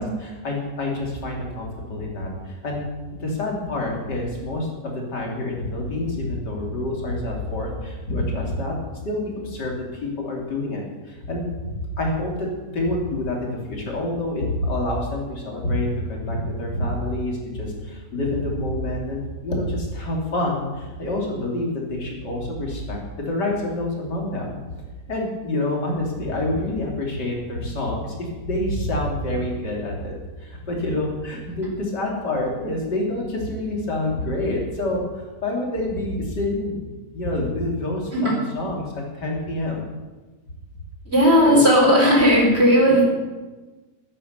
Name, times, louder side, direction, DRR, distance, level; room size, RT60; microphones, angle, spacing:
voice 1, 0.0-2.9 3.2-8.8 9.1-24.6 25.1-39.8 41.4-41.6, left 1 dB, 90° left, -1 dB, 3.5 m, -27 dB
voice 2, 41.1-43.1, equal, 35° right, -2 dB, 4.4 m, -16 dB
13.5 x 9.9 x 6.8 m, 1.2 s
omnidirectional pair, 1.8 m